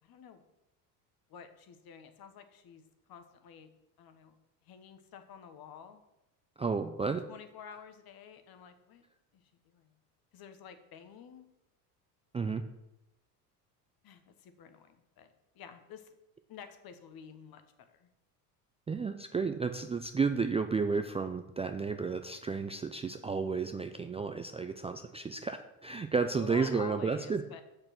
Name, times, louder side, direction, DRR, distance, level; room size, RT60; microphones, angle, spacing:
voice 1, 0.0-0.4 1.3-3.7 4.0-4.3 4.6-6.0 7.3-9.0 9.3-10.0 10.3-11.5 14.0-16.1 16.5-18.1 26.4-27.6, left 7 dB, 50° left, 9 dB, 1.4 m, -50 dB
voice 2, 6.6-7.2 12.3-12.6 18.9-27.4, right 5 dB, 15° right, 7 dB, 0.4 m, -32 dB
6.7 x 6.6 x 6.0 m, 0.90 s
hypercardioid pair, 80°, 48 cm